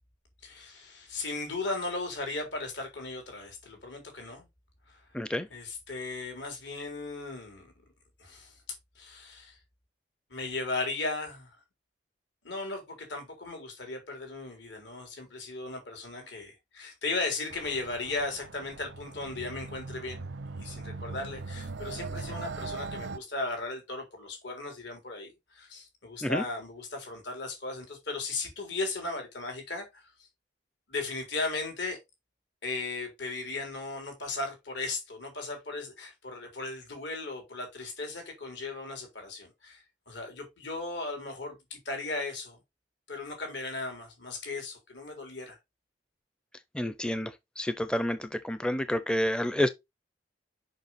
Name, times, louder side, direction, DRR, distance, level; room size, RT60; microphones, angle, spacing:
voice 1, 0.4-4.5 4.9-5.0 5.5-7.7 8.2-8.6 9.0-9.6 10.3-11.5 12.4-20.3 20.5-30.1 30.9-32.0 32.6-42.6 43.1-45.6, left 3 dB, 80° left, 3.9 m, -36 dB
voice 2, 5.1-5.5 26.2-26.4 46.7-49.7, left 1 dB, 5° left, 0.5 m, -29 dB
sound 1, 17.5-23.2, right 3 dB, 85° right, 0.7 m, -40 dB
6.6 x 5.6 x 4.1 m
head